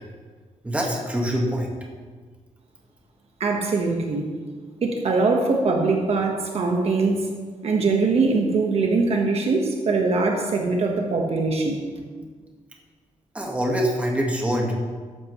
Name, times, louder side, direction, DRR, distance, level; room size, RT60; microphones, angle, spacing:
voice 1, 0.6-1.7 13.3-14.7, equal, 10° right, -1 dB, 1.5 m, -24 dB
voice 2, 3.4-4.3 4.8-7.3 7.6-11.8, right 3 dB, 50° right, 1 dB, 1.3 m, -22 dB
14.0 x 10.5 x 3.2 m, 1.5 s
wide cardioid pair, 175°, 13 cm